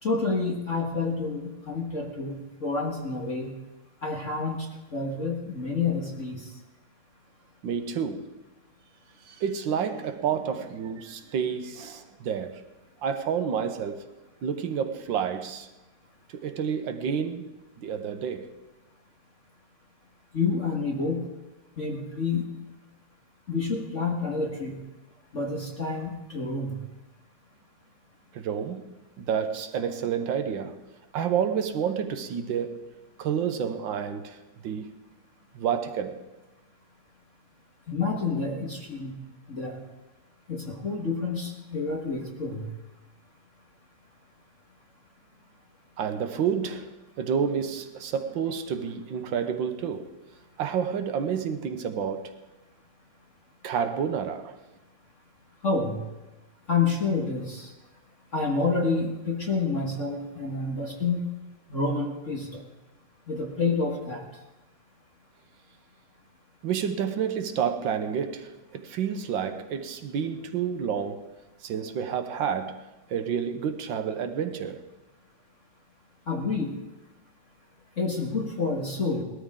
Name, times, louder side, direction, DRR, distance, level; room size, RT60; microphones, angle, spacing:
voice 1, 0.0-3.5 4.0-6.5 20.3-21.2 21.8-22.5 23.5-24.8 25.3-26.8 37.9-39.1 39.5-39.8 40.5-42.7 55.6-56.0 56.7-57.7 58.3-61.3 61.7-62.6 63.3-64.3 76.3-76.7 78.0-79.2, left 4 dB, 40° left, 1.8 m, -28 dB
voice 2, 7.6-8.3 9.2-12.6 13.0-14.1 14.4-15.7 16.3-18.6 28.3-28.9 29.2-30.8 31.1-32.9 33.2-34.9 35.5-36.2 46.0-50.1 50.6-52.3 53.6-54.6 66.6-71.3 71.6-74.9, right 7 dB, 70° right, 1.6 m, -29 dB
19.5 x 13.0 x 3.7 m
omnidirectional pair, 2.2 m